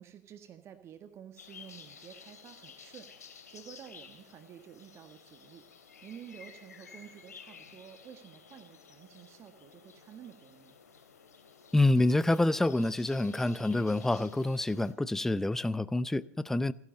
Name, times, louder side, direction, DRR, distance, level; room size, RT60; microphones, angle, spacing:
voice 1, 0.0-10.8, right 9 dB, 30° right, 1.6 m, -51 dB
sound 1, 1.4-14.9, left 6 dB, 80° left, 3.2 m, -53 dB
voice 2, 11.7-16.7, left 2 dB, 5° left, 0.6 m, -27 dB
29.0 x 10.5 x 4.0 m
figure-of-eight pair, 90°, 9 cm